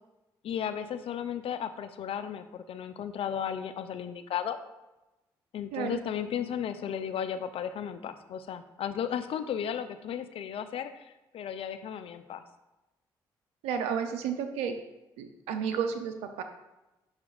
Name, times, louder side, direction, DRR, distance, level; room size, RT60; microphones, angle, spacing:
voice 1, 0.4-4.6 5.5-12.4, left 8 dB, 65° left, 11 dB, 0.5 m, -34 dB
voice 2, 13.6-14.8 15.2-16.4, right 7 dB, 85° right, 7 dB, 0.6 m, -32 dB
8.8 x 5.8 x 2.4 m, 1.0 s
supercardioid pair, 55°, 10 cm